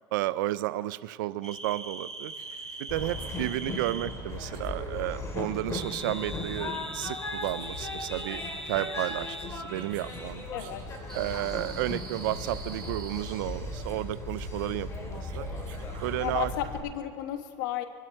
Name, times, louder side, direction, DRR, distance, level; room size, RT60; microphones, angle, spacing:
voice 1, 0.1-2.3 2.8-8.4 8.7-10.4 11.1-15.5 16.0-16.5, right 16 dB, 85° right, 16 dB, 0.5 m, -32 dB
sound 1, 1.4-4.2 5.8-9.5 11.1-13.2, right 1 dB, 5° left, 4.8 m, -41 dB
sound 2, 2.3-5.4 5.7-5.9 6.7-6.8 7.1-11.4 11.8-11.9 12.2-12.3 12.5-12.7 13.0-13.1 13.5-16.4, right 7 dB, 60° right, 4.5 m, -55 dB
Train, 2.9-16.8, left 2 dB, 25° left, 4.0 m, -37 dB
voice 2, 10.5-10.8 16.2-17.9, left 11 dB, 85° left, 8 dB, 1.3 m, -33 dB
24.5 x 12.0 x 4.6 m, 2.3 s
supercardioid pair, 100°, 10 cm